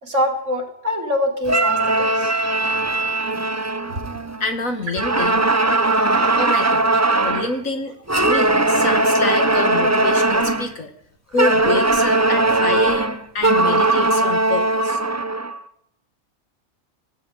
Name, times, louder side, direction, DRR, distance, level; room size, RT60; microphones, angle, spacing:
voice 1, 0.0-2.3 3.9-4.0, left 1 dB, 65° right, 2 dB, 4.7 m, -24 dB
sound 1, 1.5-4.5 4.9-7.5 8.1-10.7 11.4-15.6, right 2 dB, 15° right, 0.8 m, -19 dB
voice 2, 4.4-5.4 6.0-7.9 8.2-10.9 11.3-15.0, left 3 dB, 80° left, 6 dB, 2.6 m, -27 dB
18.5 x 16.0 x 9.4 m, 0.75 s
omnidirectional pair, 1.4 m